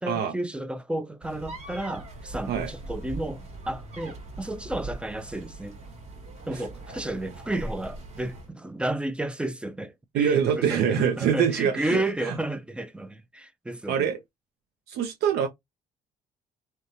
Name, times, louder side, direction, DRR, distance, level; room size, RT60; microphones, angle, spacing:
voice 1, 0.0-5.8 6.5-14.1, right 1 dB, 5° right, 0.3 m, -32 dB
sound 1, 1.2-8.5, right 2 dB, 40° right, 1.3 m, -40 dB
voice 2, 10.1-12.3 13.9-14.2 14.9-15.5, right 8 dB, 75° right, 0.5 m, -24 dB
2.9 x 2.2 x 2.5 m
cardioid pair, 110°, 17 cm